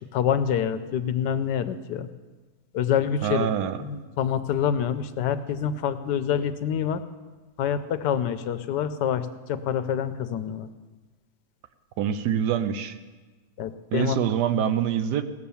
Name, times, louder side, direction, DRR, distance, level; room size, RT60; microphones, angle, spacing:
voice 1, 0.0-2.1 2.7-3.5 3.8-7.0 7.6-10.7 13.6-14.2, left 8 dB, 85° left, 11 dB, 1.3 m, -26 dB
voice 2, 3.2-3.8 12.0-13.0 13.9-15.2, right 9 dB, 75° right, 10 dB, 1.3 m, -25 dB
17.0 x 6.9 x 7.0 m, 1.3 s
omnidirectional pair, 1.8 m